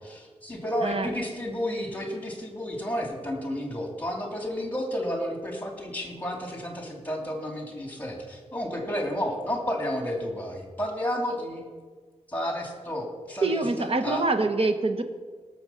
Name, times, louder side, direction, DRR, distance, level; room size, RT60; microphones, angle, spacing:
voice 1, 0.1-11.6 12.3-14.2, equal, 15° left, 1 dB, 2.7 m, -31 dB
voice 2, 13.4-15.0, right 3 dB, 55° right, 7 dB, 1.1 m, -25 dB
18.0 x 7.0 x 5.7 m, 1.5 s
wide cardioid pair, 120°, 12 cm